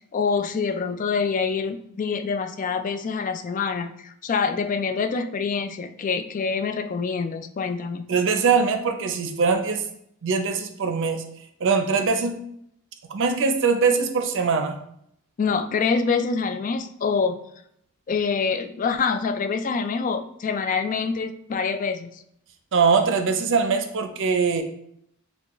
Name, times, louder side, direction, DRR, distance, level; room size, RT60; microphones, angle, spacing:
voice 1, 0.1-8.1 15.4-17.4 18.1-22.2, left 5 dB, 35° left, 9 dB, 0.3 m, -26 dB
voice 2, 8.1-9.8 10.2-11.2 11.6-12.3 13.1-14.7 22.7-24.6, right 5 dB, 60° right, 6 dB, 0.5 m, -22 dB
6.7 x 2.3 x 3.0 m, 0.72 s
head